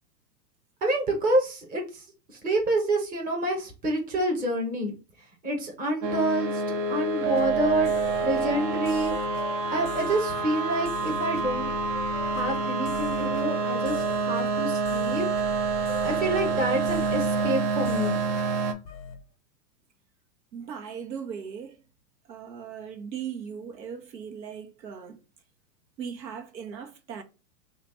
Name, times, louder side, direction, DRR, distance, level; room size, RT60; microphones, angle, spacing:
voice 1, 0.8-2.0 2.4-4.9 5.4-6.6 6.9-7.9 8.2-9.1 9.7-11.7 12.2-15.3 16.0-18.2, right 1 dB, 20° right, 1.0 m, -28 dB
sound 1, 6.0-18.7, right 4 dB, 45° right, 0.7 m, -27 dB
sound 2, 7.3-19.2, left 7 dB, 30° left, 0.4 m, -42 dB
voice 2, 20.5-21.8 22.3-25.2 26.0-27.2, right 7 dB, 85° right, 1.0 m, -38 dB
2.9 x 2.5 x 4.2 m
hypercardioid pair, 140°, 49 cm